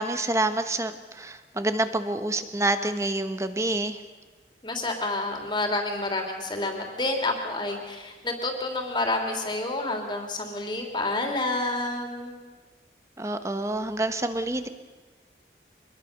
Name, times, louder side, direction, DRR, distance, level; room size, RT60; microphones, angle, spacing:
voice 1, 0.0-4.0 13.2-14.7, right 2 dB, 15° right, 9 dB, 1.2 m, -27 dB
voice 2, 4.6-12.4, left 2 dB, 25° left, 3 dB, 3.2 m, -29 dB
24.5 x 21.5 x 6.7 m, 1.3 s
head